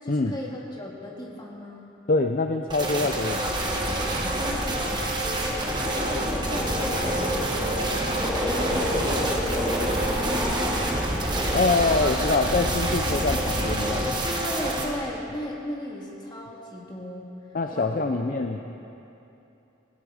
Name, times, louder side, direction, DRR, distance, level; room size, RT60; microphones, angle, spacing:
voice 1, 0.0-1.8 4.4-9.5 14.2-17.3 17.7-18.3, equal, 20° left, -2 dB, 1.9 m, -36 dB
voice 2, 2.1-3.6 11.5-14.1 17.5-18.6, left 3 dB, 40° left, 5 dB, 0.5 m, -25 dB
sound 1, 2.7-14.9, right 1 dB, 20° right, 1.6 m, -28 dB
sound 2, 3.5-14.1, equal, ahead, 2.3 m, -30 dB
17.0 x 16.0 x 4.9 m, 2.9 s
head